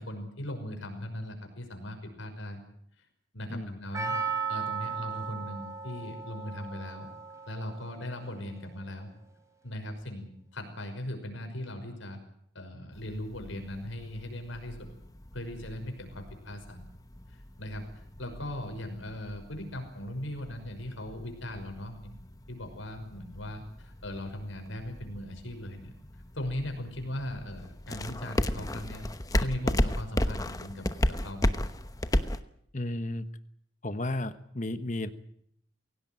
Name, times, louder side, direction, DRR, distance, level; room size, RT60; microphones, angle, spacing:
voice 1, 0.0-2.6 3.0-3.1 3.3-7.1 7.5-9.1 9.6-12.2 12.5-14.8 15.3-16.8 17.3-22.1 22.5-25.9 26.3-29.0 29.4-31.7, left 1 dB, 80° left, 6 dB, 5.8 m, -39 dB
Percussion, 3.9-8.3 8.6-8.7, right 5 dB, 15° right, 4.0 m, -36 dB
sound 1, 12.9-32.4, left 1 dB, 20° left, 1.0 m, -35 dB
voice 2, 32.7-33.2 33.8-35.1, left 1 dB, 40° left, 11 dB, 1.3 m, -33 dB
22.5 x 17.5 x 9.0 m, 0.69 s
head